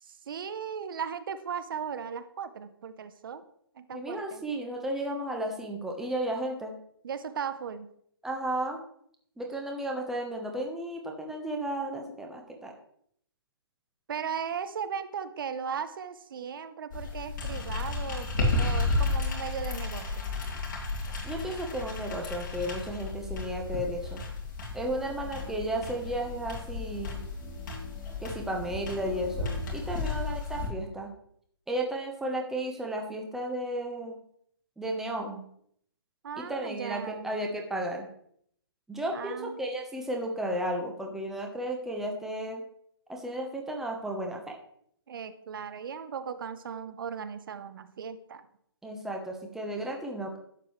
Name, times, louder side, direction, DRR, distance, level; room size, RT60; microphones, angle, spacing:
voice 1, 0.0-3.4 3.8-4.4 7.0-7.9 14.1-20.3 29.9-30.2 36.2-37.3 39.1-39.6 45.1-48.5, right 7 dB, 60° right, 12 dB, 0.8 m, -37 dB
voice 2, 3.9-6.7 8.2-8.8 9.4-12.7 21.2-24.2 24.7-27.2 28.2-31.1 31.7-34.2 34.8-35.4 36.4-38.1 38.9-42.6 43.1-44.6 48.8-50.4, right 1 dB, 5° right, 1 dB, 1.0 m, -33 dB
sound 1, 16.9-30.7, left 3 dB, 50° left, 3.0 m, -33 dB
sound 2, 24.9-30.1, left 4 dB, 25° left, 1.1 m, -49 dB
11.5 x 7.5 x 3.2 m, 0.67 s
hypercardioid pair, 155°, 13 cm